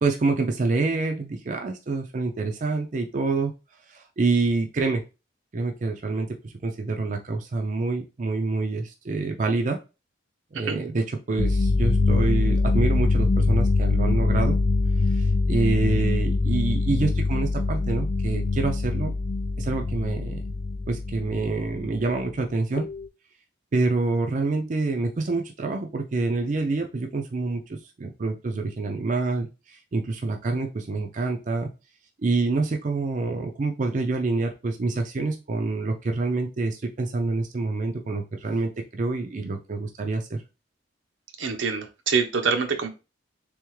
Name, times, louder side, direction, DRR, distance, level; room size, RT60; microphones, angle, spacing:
voice 1, 0.0-3.5 3.9-5.0 5.5-9.8 10.5-14.6 15.1-19.1 19.6-20.4 20.9-22.9 23.7-31.7 32.2-40.4, right 3 dB, 40° right, 3 dB, 0.4 m, -27 dB
sound 1, 11.4-22.2 22.8-23.1, left 3 dB, 45° left, 0.4 m, -23 dB
voice 2, 41.4-42.9, right 5 dB, 80° right, 6 dB, 0.7 m, -25 dB
3.5 x 3.4 x 3.1 m, 0.29 s
head